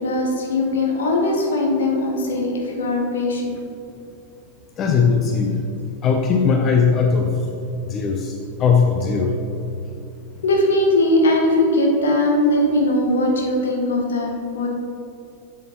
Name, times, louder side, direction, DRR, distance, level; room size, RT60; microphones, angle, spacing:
voice 1, 0.0-3.6 10.4-14.7, left 1 dB, 65° left, 0 dB, 1.2 m, -20 dB
voice 2, 4.8-5.6 6.0-7.3 7.9-9.4, left 5 dB, 30° left, 2 dB, 0.6 m, -19 dB
7.9 x 7.2 x 3.0 m, 2.7 s
figure-of-eight pair, 90°, 0 cm